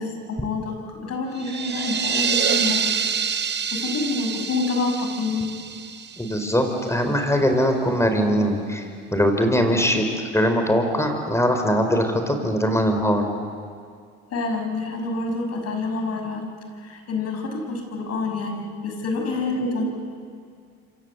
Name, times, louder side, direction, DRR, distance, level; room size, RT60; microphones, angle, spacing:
voice 1, 0.0-2.9 3.7-5.5 14.3-16.5 16.8-19.9, left 3 dB, 50° left, 3 dB, 6.5 m, -27 dB
sound 1, 1.4-7.0, right 6 dB, 35° right, 1.4 m, -27 dB
voice 2, 6.2-8.8 9.1-10.1 10.3-13.3, equal, 10° left, 5 dB, 5.0 m, -21 dB
27.0 x 26.5 x 8.3 m, 2.2 s
supercardioid pair, 80°, 31 cm